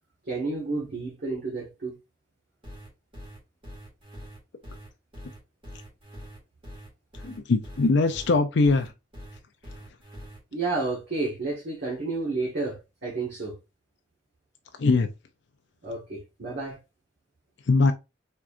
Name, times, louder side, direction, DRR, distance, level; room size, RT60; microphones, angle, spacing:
voice 1, 0.3-1.9 10.5-13.6 15.8-16.8, right 3 dB, 55° right, 1.6 m, -31 dB
sound 1, 2.6-10.4, equal, 30° right, 2.0 m, -43 dB
voice 2, 7.2-8.9 14.8-15.1 17.7-17.9, left 3 dB, 60° left, 0.5 m, -21 dB
4.5 x 3.6 x 2.5 m
head